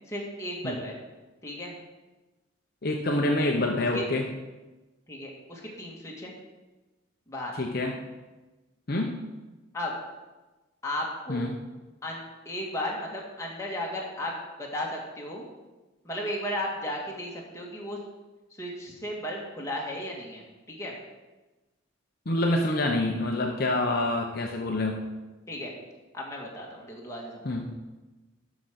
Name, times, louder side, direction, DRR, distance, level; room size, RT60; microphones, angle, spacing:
voice 1, 0.1-1.0 1.4-1.7 3.8-4.0 5.1-6.3 7.3-7.5 9.7-9.9 10.8-11.4 12.0-15.4 16.0-18.0 18.6-20.4 20.7-20.9 25.5-25.7 26.1-27.6, left 1 dB, 15° left, -2 dB, 1.8 m, -35 dB
voice 2, 2.8-4.2 7.5-7.9 8.9-9.2 11.3-11.5 22.3-25.0 27.4-27.7, left 1 dB, 50° left, 1 dB, 0.8 m, -26 dB
12.0 x 5.0 x 6.0 m, 1.2 s
head